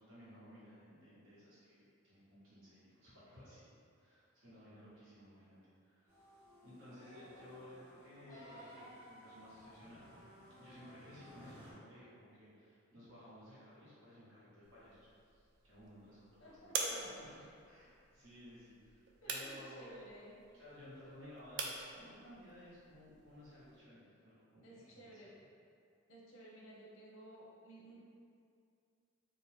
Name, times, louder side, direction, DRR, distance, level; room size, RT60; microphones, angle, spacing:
voice 1, 0.0-3.7 4.0-6.2 6.6-10.1 10.6-17.3 17.6-20.1 20.5-25.3, equal, 75° right, -10 dB, 1.1 m, -57 dB
sound 1, 6.1-11.7, equal, 10° right, 0.8 m, -60 dB
sound 2, 6.9-10.4 11.1-11.2, equal, 15° left, 0.4 m, -57 dB
sound 3, 14.6-23.8, right 4 dB, 60° right, 0.3 m, -47 dB
voice 2, 16.4-17.5 19.2-20.3 24.6-25.3 26.1-28.0, right 1 dB, 80° left, -4 dB, 0.6 m, -56 dB
2.7 x 2.2 x 3.2 m, 2.4 s
head